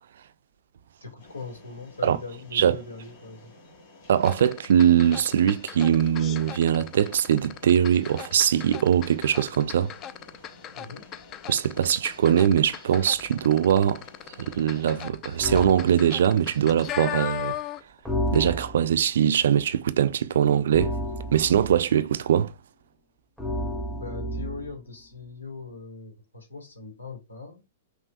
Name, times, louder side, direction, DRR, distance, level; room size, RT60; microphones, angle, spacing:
voice 1, 1.0-3.5 10.7-11.1 24.0-27.6, left 3 dB, 85° left, 1.6 m, -40 dB
sound 1, 1.2-15.1, left 2 dB, 55° left, 1.7 m, -52 dB
voice 2, 4.1-9.9 11.5-14.0 14.4-17.6 18.3-20.9 21.3-22.5, right 9 dB, 65° right, 0.3 m, -22 dB
sound 2, 4.2-18.0 18.3-18.4, left 12 dB, 30° left, 0.4 m, -38 dB
sound 3, 15.4-15.8 18.1-19.0 20.7-21.8 23.4-24.8, equal, 5° left, 0.8 m, -31 dB
5.5 x 2.5 x 2.3 m
figure-of-eight pair, 110°, 0 cm